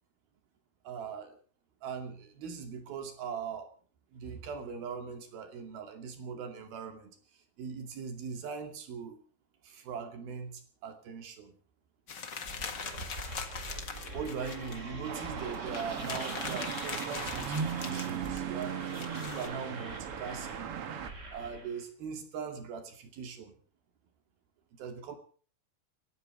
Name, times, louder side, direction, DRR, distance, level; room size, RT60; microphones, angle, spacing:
voice 1, 0.8-1.4 1.8-3.7 4.1-7.1 7.6-9.2 9.6-11.5 14.1-20.8 21.3-23.5 24.7-25.2, right 6 dB, 65° right, 6 dB, 4.2 m, -40 dB
sound 1, 12.1-14.8 15.2-15.3 15.5-19.5, left 6 dB, 50° left, 1.3 m, -41 dB
sound 2, 12.4-21.8, right 2 dB, 20° right, 2.9 m, -44 dB
sound 3, 15.1-21.1, right 8 dB, 85° right, 1.2 m, -37 dB
29.5 x 14.5 x 3.3 m, 0.42 s
omnidirectional pair, 4.8 m